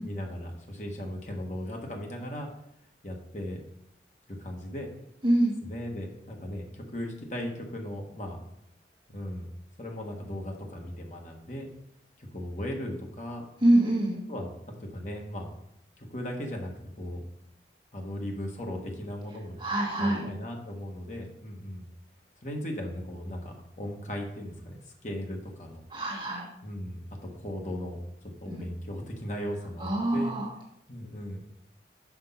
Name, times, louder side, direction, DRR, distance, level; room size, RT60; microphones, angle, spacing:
voice 1, 0.0-2.5 3.0-3.6 4.3-4.9 5.6-8.4 9.1-9.5 9.8-11.7 12.2-13.4 14.3-15.5 16.0-16.7 17.0-17.2 17.9-19.6 20.0-21.9 22.4-25.8 26.6-28.0 28.4-30.3 30.9-31.4, equal, 40° left, 1 dB, 1.3 m, -37 dB
voice 2, 5.2-5.5 13.6-14.2 19.6-20.2 25.9-26.5 28.5-28.7 29.8-30.5, right 1 dB, 25° right, -3 dB, 1.5 m, -25 dB
6.0 x 5.3 x 5.7 m, 0.78 s
head